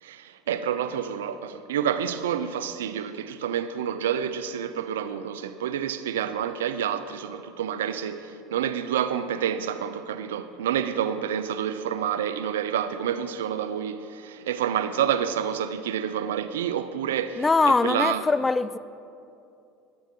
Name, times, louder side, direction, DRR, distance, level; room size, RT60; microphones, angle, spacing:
voice 1, 0.0-18.3, right 9 dB, 85° right, 0.5 m, -28 dB
voice 2, 17.4-18.8, left 3 dB, 20° left, 0.3 m, -22 dB
20.5 x 8.6 x 3.7 m
hypercardioid pair, 80°, 0 cm